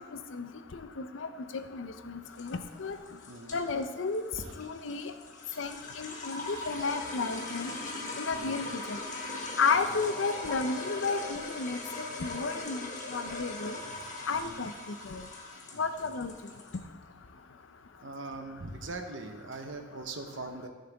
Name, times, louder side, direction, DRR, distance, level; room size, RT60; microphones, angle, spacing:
voice 1, 0.7-1.3 1.5-3.0 3.5-4.2 4.6-5.1 5.6-7.7 8.2-9.0 9.6-13.8 14.3-14.7 15.0-15.2 15.8-16.3, left 4 dB, 70° left, 9 dB, 0.6 m, -32 dB
sound 1, 2.2-16.8, left 2 dB, 40° left, 1.4 m, -40 dB
voice 2, 3.3-3.6 4.3-4.6 8.3-8.7 9.5-9.6 9.9-10.1 14.3-14.7 15.7-16.1 18.0-20.7, right 2 dB, 75° right, 5 dB, 1.0 m, -42 dB
14.5 x 6.6 x 3.5 m, 1.4 s
head